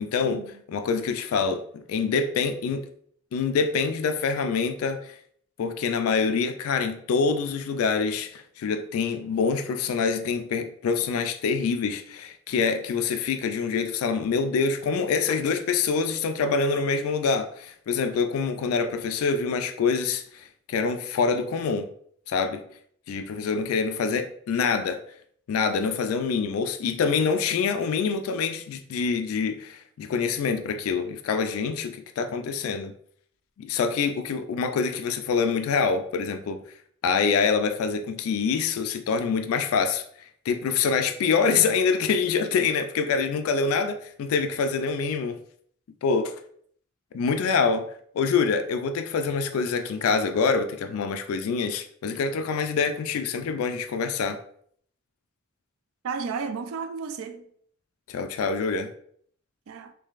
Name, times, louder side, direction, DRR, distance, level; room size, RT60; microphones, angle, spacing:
voice 1, 0.0-2.9 3.3-5.2 5.6-21.9 22.3-22.6 23.1-25.0 25.5-32.9 33.6-36.6 37.0-40.0 40.5-45.4 46.0-46.4 47.1-47.9 48.1-54.4 58.1-58.9, left 5 dB, 85° left, 0.3 m, -25 dB
voice 2, 56.0-57.5 59.7-59.9, right 5 dB, 75° right, 0.4 m, -33 dB
3.7 x 3.2 x 2.4 m
head